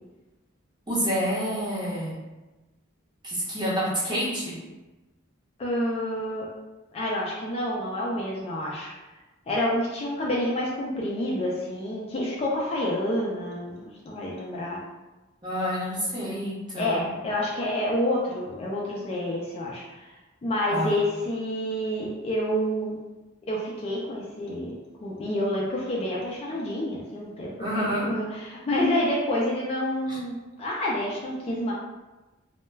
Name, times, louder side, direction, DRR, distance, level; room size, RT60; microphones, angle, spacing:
voice 1, 0.9-2.2 3.2-4.6 15.4-17.1 20.7-21.0 27.6-28.1 30.1-30.2, equal, 20° right, -8 dB, 0.8 m, -28 dB
voice 2, 5.6-6.5 6.9-8.9 9.5-14.8 16.8-20.1 20.4-22.9 23.5-24.7 25.0-27.5 28.0-31.7, left 1 dB, 30° left, -3 dB, 0.3 m, -28 dB
2.2 x 2.1 x 3.2 m, 1.1 s
head